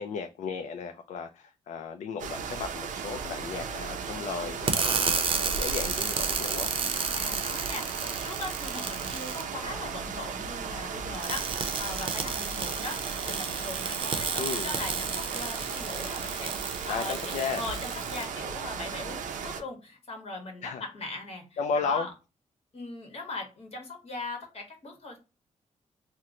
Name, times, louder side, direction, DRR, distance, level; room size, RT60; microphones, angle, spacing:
voice 1, 0.0-6.7 14.4-14.7 16.9-17.6 20.6-20.8 21.6-22.1, left 5 dB, 70° left, 0.4 m, -34 dB
sound 1, 2.2-19.6, right 6 dB, 85° right, 0.5 m, -36 dB
sound 2, 4.7-9.4 11.1-18.2, right 5 dB, 45° right, 0.6 m, -32 dB
voice 2, 7.2-11.5 11.8-17.2 17.5-22.1 22.7-25.2, left 2 dB, 55° left, 1.2 m, -39 dB
2.9 x 2.1 x 3.6 m
cardioid pair, 100°, 13 cm